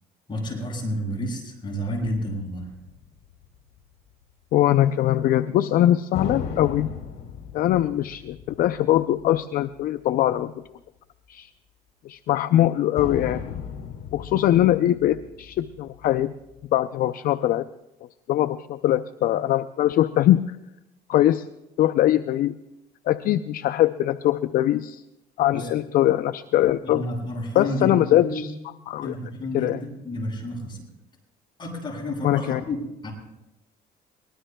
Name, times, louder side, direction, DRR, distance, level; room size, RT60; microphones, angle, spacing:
voice 1, 0.3-2.7 25.5-25.7 26.8-28.4 29.0-30.8 31.6-33.1, left 1 dB, 30° left, -1 dB, 6.1 m, -30 dB
sound 1, 1.9-3.8 6.1-9.9 10.2-10.3 13.0-16.6, left 7 dB, 75° left, 1.9 m, -37 dB
voice 2, 4.5-6.9 7.5-10.5 11.3-11.5 12.1-13.5 14.1-16.3 16.7-17.7 18.3-20.6 21.1-21.5 21.8-22.6 23.1-25.0 25.4-27.0 27.5-28.5 28.9-29.1 29.5-29.8 32.2-32.6, left 13 dB, 60° left, 11 dB, 0.4 m, -22 dB
22.5 x 20.0 x 2.2 m, 0.92 s
cardioid pair, 110°, 17 cm